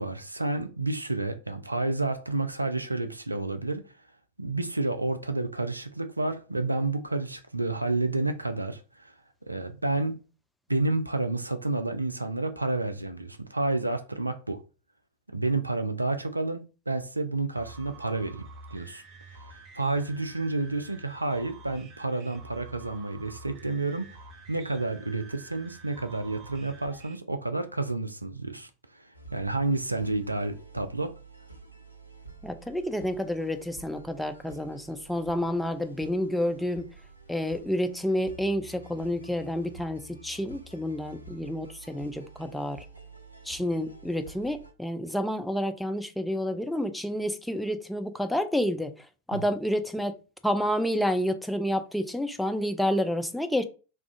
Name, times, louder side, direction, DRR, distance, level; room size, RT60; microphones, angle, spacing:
voice 1, 0.0-3.8 4.4-9.1 9.5-10.2 10.7-14.6 15.3-19.0 19.5-24.2 24.5-31.1 49.3-49.4, right 2 dB, 85° right, 0.3 m, -30 dB
sound 1, 17.6-27.2, right 3 dB, 35° right, 0.7 m, -49 dB
sound 2, 29.1-44.7, right 3 dB, 90° left, 0.4 m, -49 dB
voice 2, 32.4-36.9 37.3-42.9 43.4-50.2 50.4-53.6, equal, ahead, 0.3 m, -29 dB
2.4 x 2.3 x 3.6 m
figure-of-eight pair, 90°, 0 cm